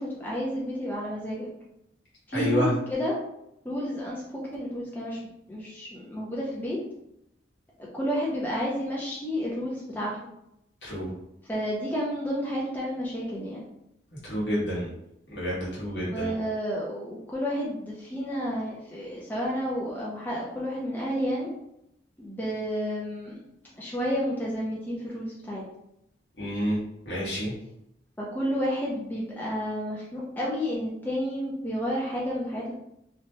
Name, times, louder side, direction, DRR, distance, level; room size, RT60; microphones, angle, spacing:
voice 1, 0.0-1.5 2.3-3.1 3.6-5.2 5.5-6.8 7.9-10.1 11.4-13.6 16.1-21.5 22.2-23.4 23.8-25.6 28.2-32.7, equal, 10° left, -5 dB, 0.4 m, -31 dB
voice 2, 2.3-2.7 10.8-11.1 14.1-14.9 15.3-16.3 26.4-26.8 27.0-27.5, equal, 70° left, -7 dB, 1.3 m, -29 dB
2.7 x 2.2 x 3.0 m, 0.80 s
head